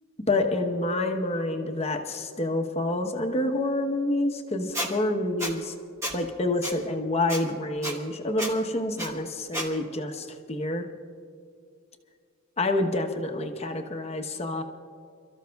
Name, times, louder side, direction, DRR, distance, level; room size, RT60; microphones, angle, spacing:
voice 1, 0.3-5.7 6.1-10.9 12.6-14.6, left 2 dB, 30° left, 4 dB, 1.0 m, -28 dB
Squeak, 4.7-4.9 5.4-5.5 6.0-6.2 6.6-6.7 7.3-7.4 7.8-7.9 8.4-8.5 9.0-9.1 9.5-9.7, equal, 15° right, 1.2 m, -30 dB
28.5 x 13.5 x 2.3 m, 2.2 s
head